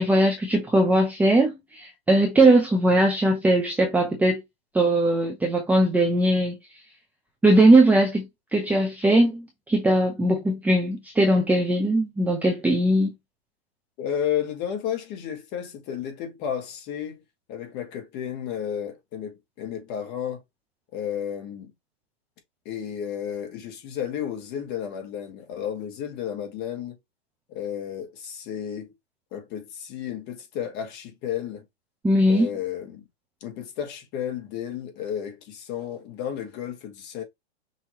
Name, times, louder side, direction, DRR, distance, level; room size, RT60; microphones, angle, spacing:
voice 1, 0.0-4.4 4.7-6.6 7.4-8.3 8.5-13.1 32.0-32.5, right 1 dB, 5° right, 0.6 m, -20 dB
voice 2, 14.0-17.2 17.5-20.4 20.9-21.7 22.7-27.0 27.5-28.9 29.3-31.6 32.3-33.0 33.4-37.2, left 9 dB, 35° left, 1.6 m, -32 dB
5.7 x 2.8 x 2.9 m
hypercardioid pair, 135°, 32 cm